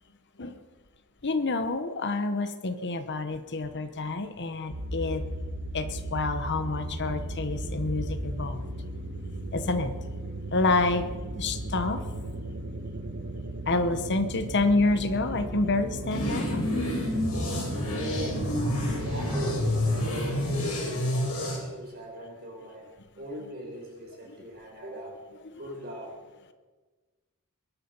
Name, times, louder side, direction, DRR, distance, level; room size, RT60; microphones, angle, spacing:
voice 1, 1.2-5.2 5.7-8.6 9.5-9.9 10.5-11.1 11.4-12.0 13.7-16.7, left 3 dB, 50° left, 10 dB, 1.0 m, -28 dB
sound 1, 4.7-20.7, right 1 dB, 70° right, 1.4 m, -36 dB
sound 2, 16.1-21.6, left 1 dB, 70° left, 3.9 m, -28 dB
voice 2, 19.1-22.9 23.2-25.2 25.6-26.2, equal, 45° right, -2 dB, 5.6 m, -41 dB
21.5 x 11.5 x 5.5 m, 1.3 s
head